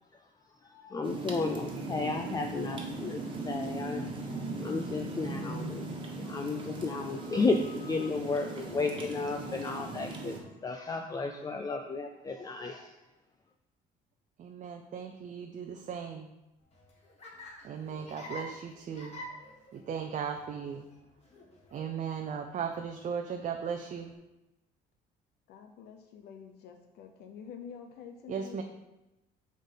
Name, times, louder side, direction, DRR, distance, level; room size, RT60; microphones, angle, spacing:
voice 1, 0.6-4.0 4.3-5.8 6.2-13.0, left 3 dB, 20° left, 5 dB, 0.5 m, -33 dB
sound 1, 1.0-10.4, right 2 dB, 30° right, 1.5 m, -38 dB
voice 2, 14.4-16.3 17.6-19.2 19.7-20.9 21.7-24.1 28.3-28.6, right 7 dB, 45° right, 4 dB, 0.6 m, -37 dB
Laughter, 16.6-24.1, left 1 dB, 40° left, 2.0 m, -49 dB
voice 3, 25.5-28.6, left 7 dB, 75° left, 4 dB, 0.7 m, -47 dB
7.2 x 3.9 x 5.6 m, 0.98 s
cardioid pair, 110°, 17 cm